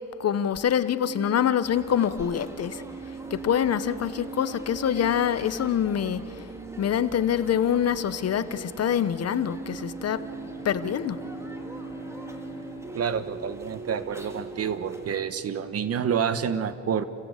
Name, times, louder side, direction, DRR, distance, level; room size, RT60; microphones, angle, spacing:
voice 1, 0.2-2.8 3.3-6.2 6.8-10.2 10.6-11.2, left 9 dB, 55° left, 14 dB, 1.1 m, -25 dB
sound 1, 1.0-15.1, right 5 dB, 25° right, 1.2 m, -40 dB
sound 2, 1.6-15.2, equal, 10° right, 2.5 m, -46 dB
Bowed string instrument, 9.6-14.4, left 3 dB, 15° left, 5.5 m, -45 dB
voice 2, 12.9-17.0, right 7 dB, 50° right, 12 dB, 1.5 m, -28 dB
29.0 x 16.0 x 8.4 m, 2.8 s
cardioid pair, 90°, 30 cm